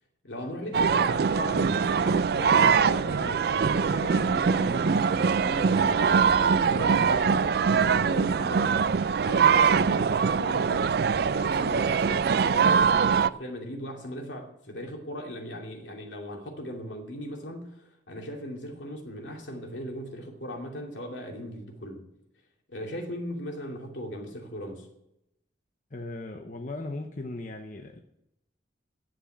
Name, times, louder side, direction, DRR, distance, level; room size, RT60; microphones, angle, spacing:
voice 1, 0.2-8.8 9.2-10.9 11.3-22.0 22.7-24.9, equal, 80° left, 2.7 m, -38 dB
sound 1, 0.7-13.3, right 6 dB, 55° right, 0.4 m, -23 dB
Wind instrument woodwind instrument, 3.7-8.0, right 1 dB, 20° right, 2.1 m, -43 dB
voice 2, 25.9-28.0, left 2 dB, 45° left, 0.9 m, -37 dB
10.0 x 7.7 x 9.0 m
head